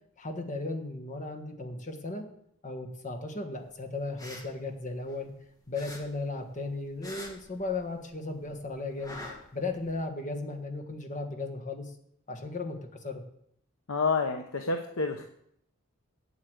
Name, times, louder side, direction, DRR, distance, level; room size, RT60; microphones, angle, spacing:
voice 1, 0.2-2.2 2.6-5.3 5.7-9.2 9.5-11.9 12.3-12.8 13.0-13.2, left 3 dB, 35° left, 3 dB, 1.6 m, -36 dB
sound 1, 4.0-5.4 5.7-8.1 8.4-10.0, left 2 dB, 15° left, 1.7 m, -45 dB
voice 2, 13.9-15.2, left 4 dB, 70° left, 5 dB, 0.9 m, -29 dB
8.3 x 8.0 x 7.9 m, 0.71 s
head